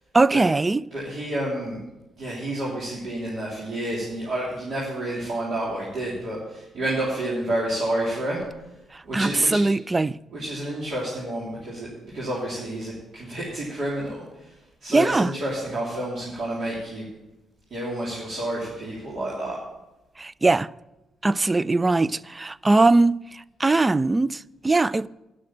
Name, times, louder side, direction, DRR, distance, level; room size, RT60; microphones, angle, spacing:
voice 1, 0.1-0.9 8.9-10.2 14.9-15.3 20.2-20.7 21.2-25.1, right 3 dB, 25° right, 0.3 m, -21 dB
voice 2, 0.9-1.8 2.2-8.4 9.0-9.6 10.3-14.2 14.8-17.1 17.7-19.6, right 1 dB, 65° right, 3.1 m, -29 dB
9.8 x 6.5 x 8.5 m
supercardioid pair, 60°, 0 cm